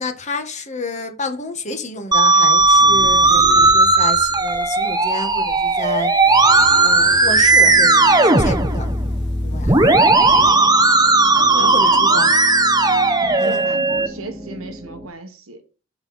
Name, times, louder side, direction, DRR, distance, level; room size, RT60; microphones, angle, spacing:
voice 1, 0.0-6.1 6.8-8.9 9.4-9.7 11.6-12.3 13.4-13.7, left 2 dB, 35° left, 1.4 m, -29 dB
Musical instrument, 2.1-14.1, right 3 dB, 20° right, 0.9 m, -15 dB
sound 1, 2.6-10.5, left 1 dB, 55° left, 2.0 m, -37 dB
sound 2, 7.7-15.1, equal, ahead, 1.6 m, -35 dB
voice 2, 11.3-12.5 13.4-15.6, right 1 dB, 85° right, 1.4 m, -33 dB
12.0 x 4.7 x 4.2 m
head